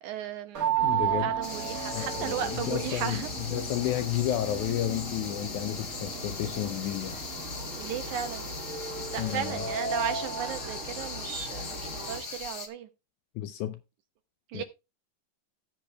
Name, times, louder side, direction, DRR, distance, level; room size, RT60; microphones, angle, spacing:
voice 1, 0.0-3.3 7.8-8.5 9.1-12.9 14.5-14.6, right 9 dB, 75° right, 2.0 m, -35 dB
sound 1, 0.5-12.5, right 8 dB, 50° right, 1.0 m, -35 dB
voice 2, 0.8-1.3 1.9-7.2 9.2-9.6 13.4-13.8 14.5-14.6, left 12 dB, 80° left, 1.8 m, -32 dB
sound 2, 0.8-12.2, right 2 dB, 30° right, 1.7 m, -41 dB
sound 3, 1.4-12.7, left 5 dB, 50° left, 0.9 m, -40 dB
16.5 x 7.3 x 2.3 m
omnidirectional pair, 4.0 m